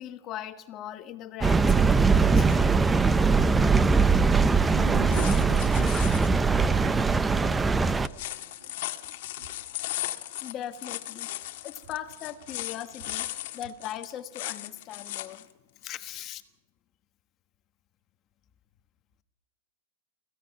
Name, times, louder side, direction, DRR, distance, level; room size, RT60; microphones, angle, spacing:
voice 1, 0.0-2.8 10.4-11.3 11.6-13.3 13.5-15.5 15.8-16.4, left 11 dB, 30° left, 10 dB, 1.4 m, -39 dB
sound 1, 1.4-8.1, right 4 dB, 10° right, 0.6 m, -21 dB
voice 2, 3.7-10.5 11.2-11.9 12.7-13.6, right 10 dB, 60° right, 7 dB, 2.0 m, -45 dB
sound 2, 5.1-6.4 7.9-15.4 15.8-15.9, left 16 dB, 55° left, 1.7 m, -37 dB
27.0 x 16.5 x 5.9 m, 0.97 s
supercardioid pair, 155°, 0 cm